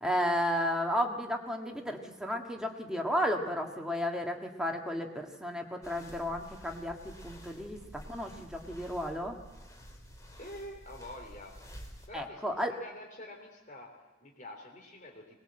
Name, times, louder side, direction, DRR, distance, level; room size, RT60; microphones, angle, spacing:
voice 1, 0.0-7.8 8.1-9.4 12.1-12.7, equal, 5° right, 1 dB, 1.7 m, -33 dB
sound 1, 5.8-12.1, equal, 15° left, 3.0 m, -50 dB
voice 2, 10.4-11.5 12.1-15.4, left 1 dB, 40° left, 1 dB, 3.3 m, -47 dB
20.5 x 20.5 x 7.7 m, 1.1 s
head